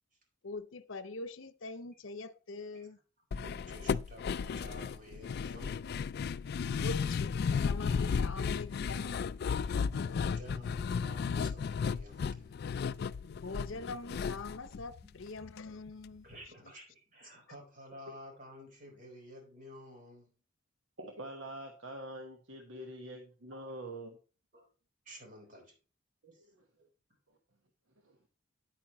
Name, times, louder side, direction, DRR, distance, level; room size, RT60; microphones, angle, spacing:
voice 1, 0.4-3.0 6.8-9.4 13.2-16.3, left 3 dB, 80° left, 0.7 m, -43 dB
sound 1, 3.3-15.6 15.9-16.0 16.3-16.4, left 6 dB, 55° left, 0.3 m, -34 dB
voice 2, 3.4-6.2 9.6-12.7 15.0-15.5 16.2-20.3 22.8-22.9 24.5-24.7 25.0-25.8 26.3-26.5 26.8-26.9, equal, 45° right, 4.2 m, -52 dB
voice 3, 21.0-24.2 26.2-26.7 28.0-28.3, right 1 dB, 85° right, 1.3 m, -45 dB
9.6 x 8.8 x 3.0 m
head